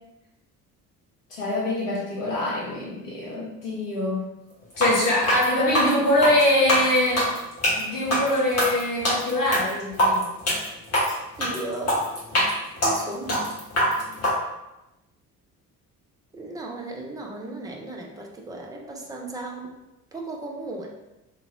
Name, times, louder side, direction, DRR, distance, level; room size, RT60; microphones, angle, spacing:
voice 1, 1.3-4.3 4.8-7.3 7.8-10.3, left 1 dB, 80° left, -6 dB, 1.0 m, -23 dB
sound 1, 4.7-14.3, equal, 35° left, 1.4 m, -24 dB
voice 2, 11.4-12.1 12.8-13.6 16.3-19.7 20.1-20.9, right 2 dB, 10° right, 0 dB, 0.4 m, -35 dB
2.9 x 2.8 x 2.6 m, 0.95 s
figure-of-eight pair, 45°, 46 cm